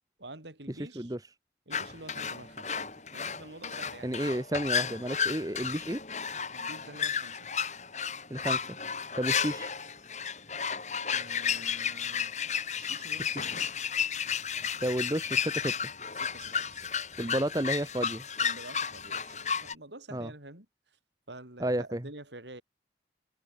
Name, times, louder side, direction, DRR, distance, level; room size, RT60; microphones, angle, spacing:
voice 1, 0.2-1.1 1.7-4.2 6.5-7.5 11.1-12.4 12.7-13.7 16.3-16.9 17.2-17.4 18.4-20.7 21.3-22.6, right 2 dB, 85° right, 5.4 m, -48 dB
sound 1, 1.7-19.7, left 7 dB, 40° left, 6.2 m, -33 dB
voice 2, 4.0-6.0 8.3-8.6 9.2-9.7 13.3-13.5 14.8-15.7 17.2-18.2 20.1-20.3 21.6-22.1, right 1 dB, 20° right, 1.2 m, -31 dB
head